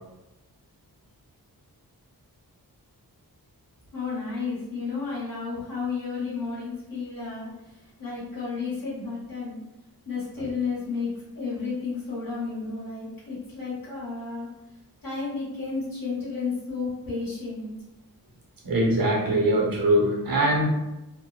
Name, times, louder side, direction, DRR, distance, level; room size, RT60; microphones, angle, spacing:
voice 1, 3.9-7.5 8.0-9.6 10.1-11.1 11.3-14.5 15.0-17.7, left 4 dB, 60° left, -8 dB, 0.9 m, -32 dB
voice 2, 18.6-20.6, right 1 dB, 60° right, -1 dB, 0.8 m, -22 dB
2.8 x 2.0 x 2.2 m, 0.97 s
wide cardioid pair, 100°, 38 cm